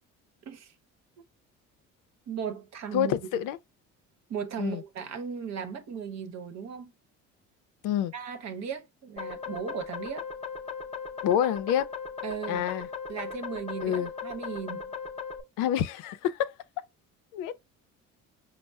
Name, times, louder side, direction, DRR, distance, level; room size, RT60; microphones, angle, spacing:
voice 1, 2.3-3.2 4.3-6.9 8.1-10.3 12.2-12.7 13.1-14.8, right 7 dB, 55° right, 0.8 m, -36 dB
voice 2, 2.9-3.6 4.6-4.8 7.8-8.1 11.2-11.9 12.5-12.9 13.8-14.1 15.6-16.6 17.3-17.5, left 10 dB, 75° left, 0.5 m, -27 dB
sound 1, 9.2-15.4, left 5 dB, 20° left, 0.6 m, -38 dB
5.2 x 2.0 x 2.2 m
supercardioid pair, 85°, 31 cm